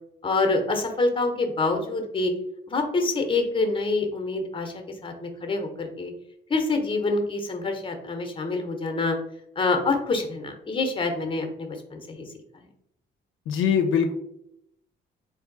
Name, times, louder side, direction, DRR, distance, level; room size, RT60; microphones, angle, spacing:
voice 1, 0.2-2.3 2.7-6.1 6.5-9.2 9.6-12.2 12.5-12.7, left 3 dB, 25° left, 4 dB, 0.8 m, -26 dB
voice 2, 13.5-14.1, left 7 dB, 85° left, 6 dB, 0.5 m, -22 dB
3.6 x 2.6 x 3.8 m, 0.77 s
cardioid pair, 90°, 20 cm